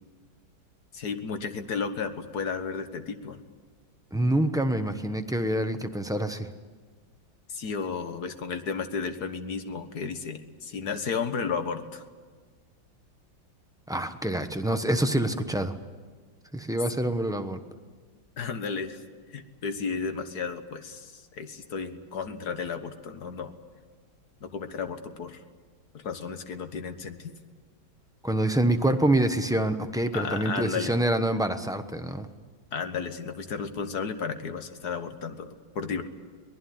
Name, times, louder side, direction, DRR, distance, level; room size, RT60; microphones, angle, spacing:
voice 1, 0.9-3.4 7.5-12.0 18.4-19.0 19.3-23.5 24.4-25.4 25.9-27.3 30.1-30.9 32.7-36.0, left 5 dB, 55° left, 9 dB, 1.8 m, -33 dB
voice 2, 4.1-6.5 13.9-15.7 16.5-17.6 28.2-32.3, right 1 dB, 5° right, 6 dB, 0.5 m, -26 dB
23.5 x 19.5 x 9.5 m, 1.5 s
omnidirectional pair, 2.2 m